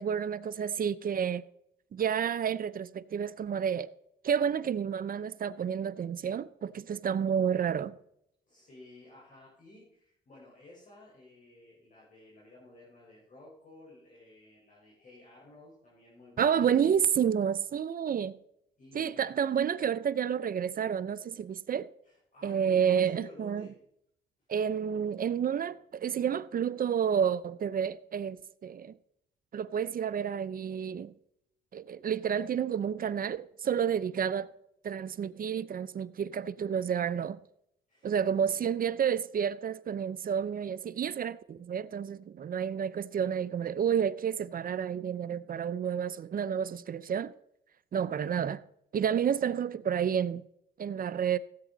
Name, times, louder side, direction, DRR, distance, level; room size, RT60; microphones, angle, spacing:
voice 1, 0.0-1.4 1.9-3.9 4.2-8.0 16.4-18.4 18.9-21.9 22.4-23.7 24.5-28.9 29.5-31.1 31.7-34.5 34.8-37.4 38.0-47.3 47.9-48.6 48.9-50.4 50.8-51.4, right 8 dB, 45° right, 0.7 m, -30 dB
voice 2, 8.5-16.5 18.8-19.3 22.0-23.8 37.9-38.8, left 2 dB, 40° left, 4.8 m, -54 dB
16.5 x 8.6 x 4.0 m
cardioid pair, 90°, 20 cm